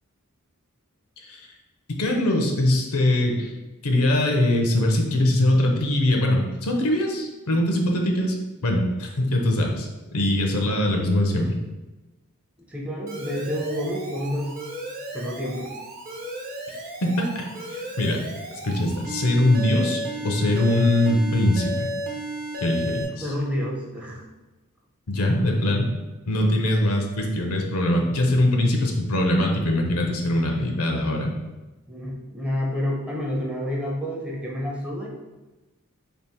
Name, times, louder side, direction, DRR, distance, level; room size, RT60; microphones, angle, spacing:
voice 1, 2.0-3.5 3.8-8.4 8.6-11.6 17.0-17.4 17.7-18.2 18.6-21.9 22.6-23.3 25.1-25.9 26.3-31.3, left 1 dB, 70° left, 2 dB, 0.7 m, -22 dB
voice 2, 12.7-14.6 15.1-15.7 22.9-24.2 31.9-35.1, equal, 5° right, -3 dB, 0.6 m, -29 dB
Alarm, 13.1-23.0, equal, 40° right, 0.7 m, -33 dB
3.5 x 2.4 x 4.3 m, 1.1 s
head